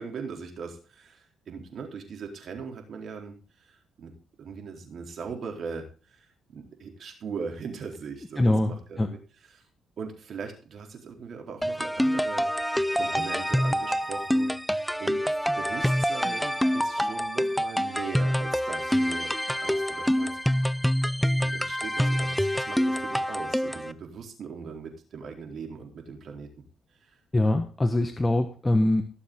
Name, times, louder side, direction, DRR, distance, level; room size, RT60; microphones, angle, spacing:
voice 1, 0.0-3.4 3.7-4.1 4.4-6.3 6.5-9.2 9.5-9.6 10.0-12.5 12.9-14.5 15.0-19.3 19.6-20.3 21.3-26.5, right 5 dB, 60° right, 3 dB, 4.0 m, -39 dB
voice 2, 8.4-8.7 9.0-9.1 27.3-29.0, left 1 dB, 15° left, 6 dB, 1.4 m, -23 dB
sound 1, 11.6-23.9, equal, ahead, 0.7 m, -26 dB
18.5 x 7.2 x 3.8 m, 0.37 s
cardioid pair, 90°, 0 cm